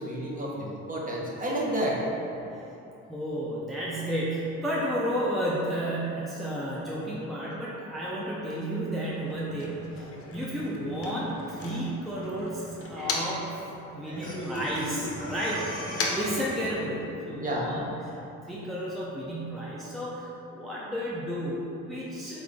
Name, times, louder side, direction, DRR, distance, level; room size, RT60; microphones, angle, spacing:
voice 1, 0.0-2.0 11.5-11.6 12.9-13.1 14.0-14.4 17.4-17.7, right 1 dB, 25° right, -4 dB, 0.9 m, -31 dB
voice 2, 3.0-13.6 13.9-15.7 16.1-18.2 18.4-22.4, equal, ahead, -7 dB, 0.5 m, -32 dB
Motor vehicle (road), 9.1-13.6 13.9-17.2, left 3 dB, 50° left, 0.7 m, -38 dB
Breathing, 14.2-16.8, left 1 dB, 30° left, 1.0 m, -37 dB
3.9 x 3.5 x 3.4 m, 2.9 s
cardioid pair, 90°, 30 cm